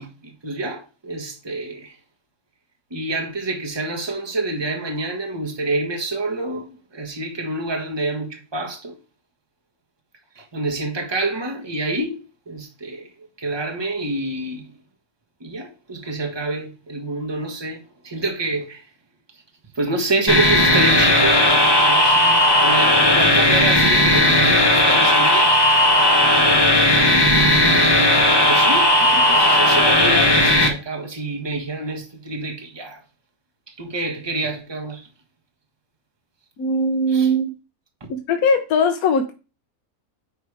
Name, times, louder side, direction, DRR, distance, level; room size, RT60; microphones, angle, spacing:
voice 1, 0.0-1.9 2.9-9.0 10.3-13.1 13.4-14.7 15.4-18.9 19.7-25.6 26.9-33.0 33.7-35.1 37.1-37.3 38.0-38.1, right 2 dB, 20° right, 1.3 m, -28 dB
sound 1, 20.3-30.7, left 1 dB, 15° left, 1.2 m, -15 dB
voice 2, 36.6-37.5 38.1-39.3, left 1 dB, 70° left, 1.3 m, -20 dB
9.7 x 3.3 x 4.8 m
omnidirectional pair, 1.6 m